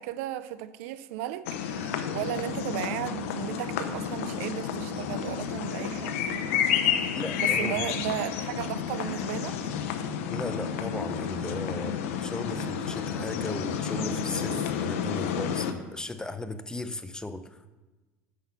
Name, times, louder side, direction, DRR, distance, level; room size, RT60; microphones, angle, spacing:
voice 1, 0.0-6.5 7.4-9.6, right 13 dB, 75° right, 0.5 m, -35 dB
sound 1, 1.5-15.7, left 7 dB, 85° left, 0.7 m, -30 dB
voice 2, 7.2-7.8 10.3-17.6, left 2 dB, 10° left, 0.5 m, -36 dB
8.1 x 6.1 x 5.4 m
supercardioid pair, 100°, 7 cm